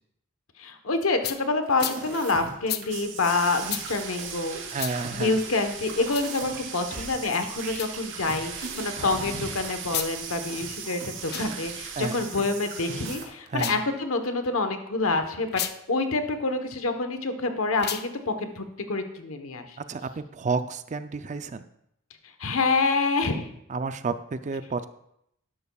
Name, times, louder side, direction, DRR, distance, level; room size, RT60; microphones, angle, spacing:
voice 1, 0.6-4.6 5.1-15.6 15.9-19.8 22.4-23.5, left 3 dB, 70° left, 7 dB, 1.1 m, -27 dB
sound 1, 1.2-1.4 1.8-2.0 2.7-2.8 3.7-3.8 4.8-4.9 6.0-6.3 7.7-7.9 9.8-10.1 11.2-11.5 13.5-13.8 15.5-15.7 17.7-18.1, left 11 dB, 50° left, 0.5 m, -32 dB
sound 2, 1.7-2.9 3.2-3.3 3.5-12.4 12.7-13.3, right 2 dB, 85° right, 3.1 m, -40 dB
sound 3, 2.9-13.2, right 7 dB, 60° right, 1.2 m, -38 dB
voice 2, 4.7-5.4 12.0-12.2 13.5-13.8 19.9-21.7 23.7-24.9, right 4 dB, 35° right, 11 dB, 0.4 m, -31 dB
12.5 x 11.0 x 2.3 m, 0.76 s
head